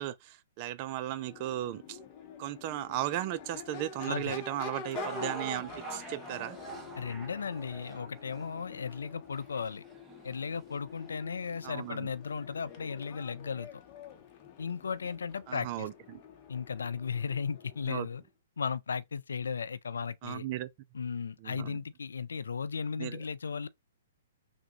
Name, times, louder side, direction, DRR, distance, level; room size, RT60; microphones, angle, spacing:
voice 1, 0.0-2.0 2.4-6.6 11.6-12.1 15.5-16.2 17.9-18.1 20.2-20.7 21.4-21.8 23.0-23.2, right 13 dB, 40° right, 0.4 m, -36 dB
Crowd / Race car auto racing / Accelerating revving vroom, 1.1-18.2, left 6 dB, 40° left, 0.7 m, -48 dB
voice 2, 4.1-4.4 7.0-9.8 10.2-13.8 14.6-15.9 16.5-18.2 18.6-20.4 20.9-23.7, left 6 dB, 75° left, 0.3 m, -36 dB
sound 1, 4.9-11.2 11.8-11.9 12.7-12.8, right 3 dB, 15° right, 0.9 m, -43 dB
3.5 x 2.1 x 3.0 m
hypercardioid pair, 125°, 0 cm